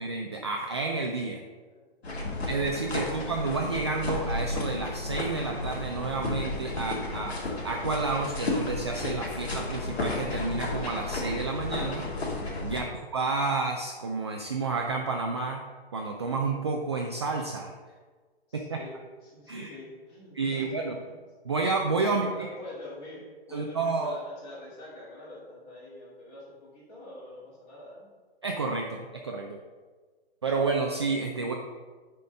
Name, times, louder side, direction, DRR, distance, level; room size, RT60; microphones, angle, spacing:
voice 1, 0.0-1.4 2.5-7.4 7.6-12.1 12.6-15.6 15.9-17.7 18.5-18.8 19.5-19.7 20.3-21.0 21.4-22.5 23.5-24.2 28.4-29.6 30.4-31.5, right 3 dB, 30° right, 1 dB, 0.3 m, -30 dB
voice 2, 1.6-3.3 12.6-13.0 18.5-21.2 22.1-28.1, left 1 dB, 20° left, -7 dB, 2.4 m, -46 dB
sound 1, 2.0-12.8, left 2 dB, 85° left, 2.1 m, -33 dB
6.9 x 4.3 x 5.2 m, 1.4 s
hypercardioid pair, 160°, 31 cm